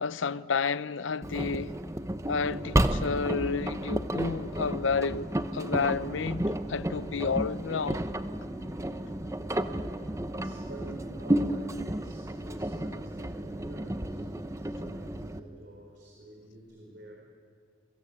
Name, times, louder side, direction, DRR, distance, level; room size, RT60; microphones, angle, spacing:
voice 1, 0.0-1.7 2.3-8.1, left 5 dB, 85° left, 0.7 m, -31 dB
Engine, 1.2-15.4, right 1 dB, 15° right, 0.8 m, -32 dB
sound 1, 2.6-11.2 16.6-16.7, equal, 5° left, 4.0 m, -52 dB
voice 2, 9.6-10.0 10.3-14.3 14.6-17.2, right 1 dB, 55° right, 4.2 m, -49 dB
27.5 x 23.0 x 8.7 m
head